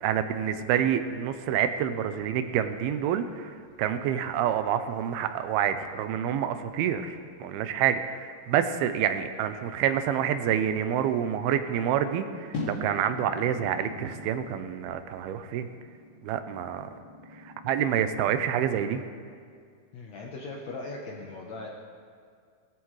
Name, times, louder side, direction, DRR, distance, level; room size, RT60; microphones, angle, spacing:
voice 1, 0.0-15.7 16.2-16.9 17.5-19.0, right 9 dB, 85° right, 9 dB, 2.6 m, -28 dB
sound 1, 12.5-18.8, left 2 dB, 40° left, 2.3 m, -42 dB
voice 2, 19.9-21.7, left 3 dB, 70° left, -1 dB, 1.7 m, -39 dB
19.5 x 14.0 x 3.2 m, 2.1 s
omnidirectional pair, 4.4 m